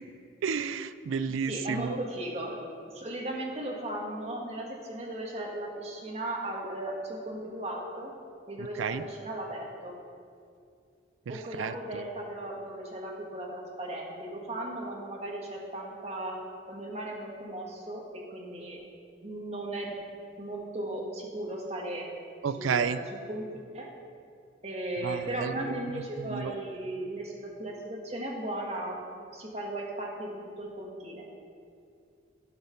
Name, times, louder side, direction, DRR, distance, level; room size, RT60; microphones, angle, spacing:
voice 1, 0.4-2.0 8.6-9.0 11.3-12.0 22.4-23.0 25.0-25.8 26.2-26.5, right 6 dB, 85° right, 13 dB, 0.4 m, -32 dB
voice 2, 1.5-2.6 2.9-8.1 8.5-9.9 11.3-16.4 16.7-18.8 19.2-19.9 20.4-22.1 22.6-23.0 23.3-23.9 24.6-29.0 29.3-31.2, right 1 dB, 35° right, -1 dB, 1.4 m, -36 dB
11.0 x 5.6 x 5.7 m, 2.3 s
head